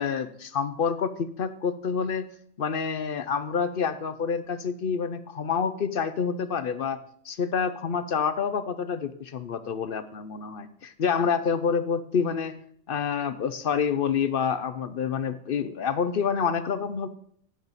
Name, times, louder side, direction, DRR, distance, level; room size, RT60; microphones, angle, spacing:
voice 1, 0.0-2.3 2.6-12.6 12.9-17.1, left 6 dB, 55° left, 12 dB, 0.7 m, -28 dB
15.5 x 7.3 x 4.0 m, 0.64 s
omnidirectional pair, 1.4 m